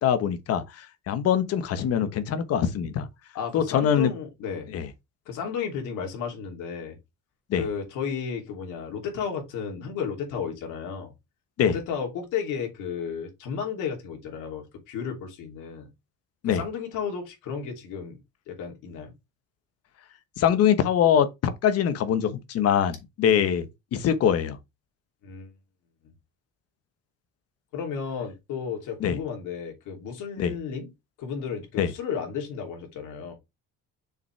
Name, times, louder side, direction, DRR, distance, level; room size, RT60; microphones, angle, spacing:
voice 1, 0.0-3.1 3.5-4.1 4.7-4.9 7.5-7.7 11.6-11.8 16.4-16.6 20.4-24.6 29.0-29.2 30.4-30.5 31.8-31.9, left 8 dB, 55° left, 1.1 m, -23 dB
voice 2, 3.3-4.7 5.3-7.0 7.5-11.1 11.6-15.9 16.4-18.2 18.5-19.1 25.2-25.5 27.7-30.9 31.2-33.3, left 6 dB, 80° left, 3.0 m, -33 dB
6.4 x 5.5 x 3.3 m
cardioid pair, 165°, 30 cm